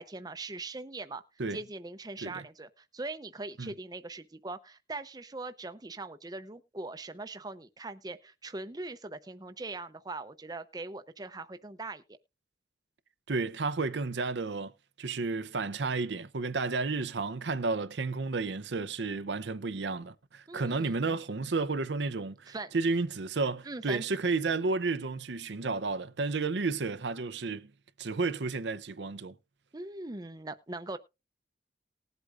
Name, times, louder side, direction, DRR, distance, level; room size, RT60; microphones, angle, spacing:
voice 1, 0.0-1.2 1.5-12.0 20.5-21.2 22.5-22.8 23.6-24.0 29.7-31.0, right 2 dB, 20° right, 0.7 m, -41 dB
voice 2, 13.3-14.7 15.0-27.7 28.0-29.3, right 3 dB, 80° right, 0.7 m, -32 dB
19.5 x 8.1 x 2.5 m
head